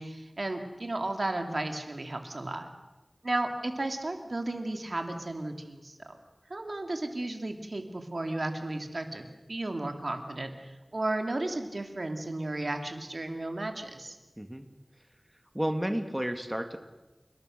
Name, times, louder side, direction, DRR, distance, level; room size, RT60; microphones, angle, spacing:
voice 1, 0.0-2.7 3.2-6.1 6.5-14.2, right 2 dB, 70° right, 5 dB, 2.7 m, -34 dB
voice 2, 14.4-14.7 15.5-16.8, equal, 15° right, 7 dB, 1.9 m, -31 dB
29.5 x 19.0 x 6.6 m, 1.1 s
wide cardioid pair, 55°, 0 cm